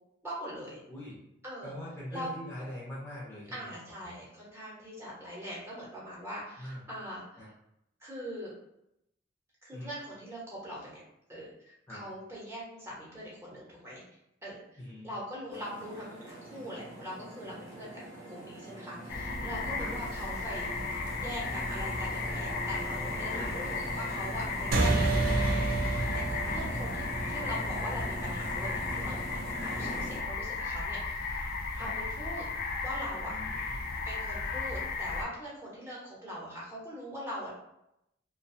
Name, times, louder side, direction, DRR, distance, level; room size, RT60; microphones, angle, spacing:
voice 1, 0.2-0.8 1.4-1.7 2.1-2.3 3.5-7.5 8.0-8.5 9.6-11.0 11.3-11.5 11.9-14.0 14.4-18.0 18.3-20.7 21.2-29.4 29.8-32.5 32.8-33.4 34.0-37.5, equal, 15° right, -6 dB, 0.8 m, -42 dB
voice 2, 1.6-3.7 4.0-4.1 6.6-6.8 7.4-7.5 9.7-9.9 11.9-12.0 14.8-15.1 19.8-19.9 23.3-23.6 26.4-26.8 29.6-29.8 31.7-31.9 33.3-33.8, left 1 dB, 15° left, -7 dB, 0.6 m, -43 dB
sound 1, 15.5-30.2, right 1 dB, 85° right, 0.7 m, -41 dB
sound 2, 19.1-35.2, left 4 dB, 55° left, 0.3 m, -35 dB
sound 3, 24.7-29.5, right 2 dB, 50° right, 0.4 m, -30 dB
2.4 x 2.2 x 2.6 m, 0.81 s
head